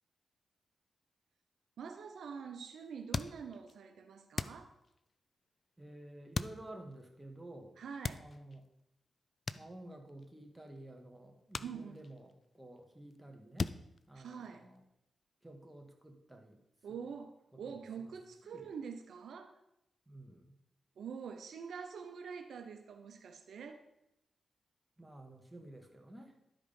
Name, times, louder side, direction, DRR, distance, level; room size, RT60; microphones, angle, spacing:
voice 1, 1.8-4.7 7.8-8.3 11.6-12.0 14.1-14.7 16.8-19.6 21.0-23.8, right 6 dB, 80° right, 6 dB, 0.8 m, -46 dB
sound 1, 3.1-3.8 4.4-5.1 6.3-7.0 7.9-8.7 9.5-10.3 10.6-10.8 11.5-12.5 12.8-13.2 13.6-14.8, left 4 dB, 50° left, 0.4 m, -40 dB
voice 2, 5.8-7.8 8.1-8.6 9.5-13.7 14.1-14.8 15.4-16.6 17.6-18.1 18.4-18.7 20.1-20.6 25.0-26.3, right 1 dB, 10° right, 2 dB, 2.1 m, -52 dB
12.0 x 5.0 x 5.4 m, 0.82 s
cardioid pair, 60°, 0 cm